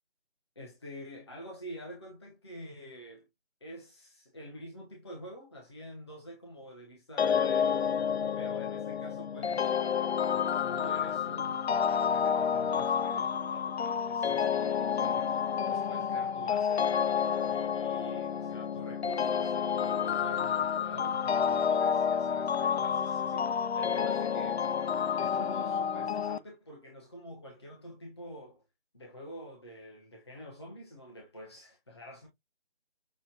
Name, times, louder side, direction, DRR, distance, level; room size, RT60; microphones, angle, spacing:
voice 1, 0.6-3.2 3.6-7.9 8.4-9.7 10.3-15.3 15.7-16.9 17.4-23.5 23.7-24.6 25.2-28.6 28.9-32.3, equal, 25° left, 0.8 m, -47 dB
sound 1, 7.2-26.4, left 7 dB, 85° left, 0.5 m, -29 dB
6.2 x 2.2 x 2.7 m
figure-of-eight pair, 170°, 31 cm